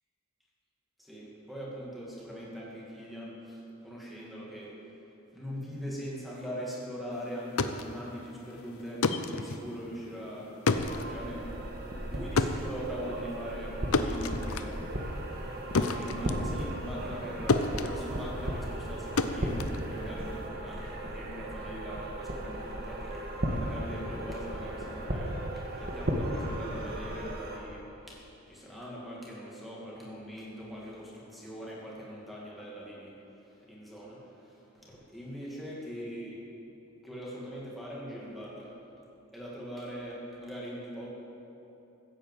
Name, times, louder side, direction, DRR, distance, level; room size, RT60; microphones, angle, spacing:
voice 1, 1.0-4.9 5.3-10.7 11.1-11.5 12.0-14.8 15.1-15.3 15.7-25.4 25.7-33.2 33.5-36.4 37.0-38.7 39.3-41.1, equal, ahead, -5 dB, 2.4 m, -41 dB
sound 1, 7.3-17.2 17.5-20.5, left 3 dB, 80° left, 0.7 m, -32 dB
sound 2, 10.7-27.6, right 1 dB, 45° right, 1.7 m, -36 dB
15.5 x 8.8 x 7.7 m, 2.9 s
head